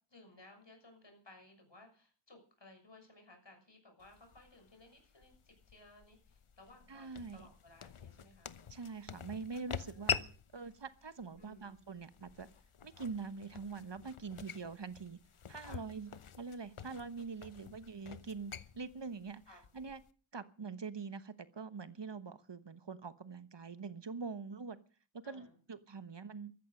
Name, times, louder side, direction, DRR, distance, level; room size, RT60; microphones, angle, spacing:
voice 1, 0.1-8.5 9.7-10.3 11.4-11.8 14.3-14.5 15.6-15.8 19.5-19.6 25.2-25.6, left 2 dB, 60° left, 6.6 m, -59 dB
sound 1, 4.0-20.1, left 6 dB, 85° left, 1.0 m, -46 dB
voice 2, 6.9-7.5 8.7-10.2 10.5-12.5 12.8-15.2 15.5-16.1 16.4-20.0 20.3-24.8 25.1-26.5, right 4 dB, 60° right, 1.2 m, -44 dB
14.5 x 14.0 x 6.5 m
wide cardioid pair, 55°, 49 cm